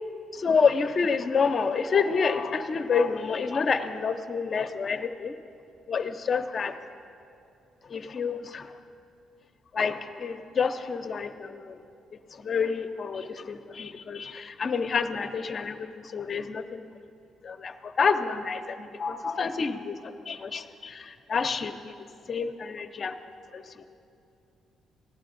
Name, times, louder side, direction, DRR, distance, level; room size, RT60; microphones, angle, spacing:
voice 1, 0.3-5.3 5.9-6.7 7.9-8.7 9.7-11.8 12.4-16.9 17.4-21.9 22.3-23.2 23.5-23.6, left 5 dB, 45° left, 7 dB, 0.6 m, -28 dB
18.5 x 11.0 x 2.6 m, 2.7 s
cardioid pair, 90°, 0 cm